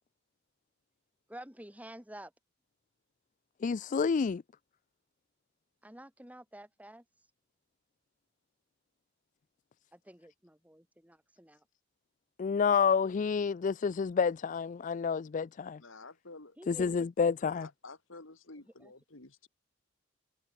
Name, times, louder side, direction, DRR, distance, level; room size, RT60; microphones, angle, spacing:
voice 1, 1.3-2.3 5.8-7.0 9.9-11.6 16.6-16.9 18.6-18.9, right 1 dB, 10° right, 6.6 m, -50 dB
voice 2, 3.6-4.4 12.4-15.8 16.7-17.7, left 6 dB, 40° left, 0.4 m, -29 dB
voice 3, 15.8-16.6 17.4-19.5, left 3 dB, 85° left, 2.9 m, -51 dB
head